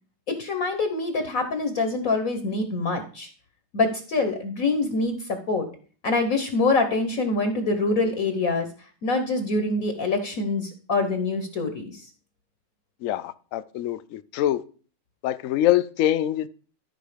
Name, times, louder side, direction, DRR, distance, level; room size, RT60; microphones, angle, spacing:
voice 1, 0.3-3.3 3.7-5.7 6.0-8.7 9.0-12.1, left 3 dB, 55° left, 1.3 m, -25 dB
voice 2, 13.0-14.6 15.2-16.5, left 13 dB, 80° left, 0.7 m, -24 dB
13.0 x 5.1 x 5.0 m
omnidirectional pair, 2.0 m